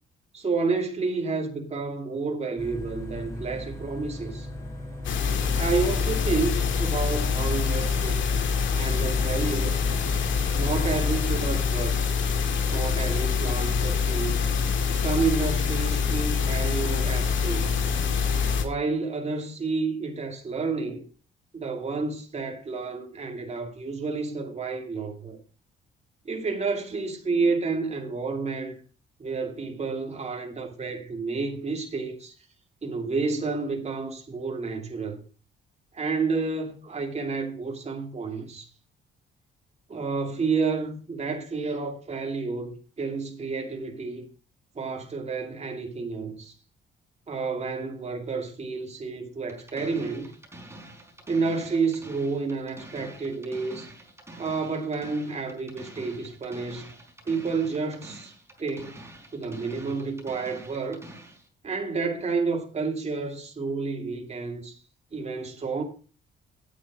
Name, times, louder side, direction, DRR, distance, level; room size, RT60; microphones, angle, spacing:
voice 1, 0.3-4.5 5.6-8.3 8.7-9.9 10.5-12.2 12.7-14.5 15.0-17.8 18.5-21.0 21.5-25.4 26.2-28.8 29.2-32.3 32.8-35.2 35.9-38.7 39.9-44.2 44.7-46.5 47.3-50.3 51.3-53.9 54.4-56.9 57.2-58.3 58.6-59.0 59.3-61.0 61.6-64.8 65.1-65.8, right 4 dB, 35° right, 2.7 m, -30 dB
sound 1, 2.6-11.6, left 1 dB, 15° left, 5.3 m, -37 dB
sound 2, 5.0-18.6, left 6 dB, 70° left, 2.1 m, -25 dB
sound 3, 49.5-61.5, right 1 dB, 15° right, 5.0 m, -47 dB
10.0 x 8.6 x 4.9 m
cardioid pair, 90°, 20 cm